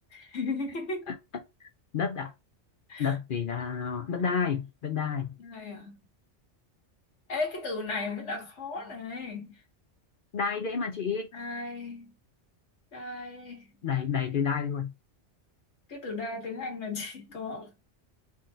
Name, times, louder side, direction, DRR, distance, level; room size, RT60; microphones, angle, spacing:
voice 1, 0.1-1.1 2.9-3.2 5.4-6.0 7.3-9.6 11.3-12.1 12.9-14.3 15.9-17.7, left 3 dB, 75° left, 1.6 m, -36 dB
voice 2, 1.9-2.3 3.0-5.3 10.3-11.3 13.8-14.9, left 6 dB, 55° left, 0.7 m, -30 dB
3.8 x 2.5 x 3.7 m
omnidirectional pair, 1.2 m